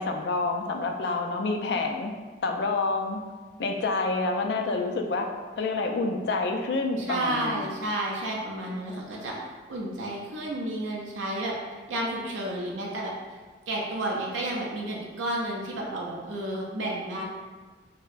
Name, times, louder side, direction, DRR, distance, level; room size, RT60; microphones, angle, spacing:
voice 1, 0.0-2.1 2.4-3.2 3.6-5.3 5.6-7.7 8.7-9.0, left 3 dB, 65° left, 3 dB, 0.3 m, -28 dB
voice 2, 7.0-9.4 9.7-11.5 11.9-13.1 13.7-17.2, right 1 dB, 90° right, -3 dB, 0.5 m, -31 dB
4.4 x 2.1 x 2.5 m, 1.4 s
head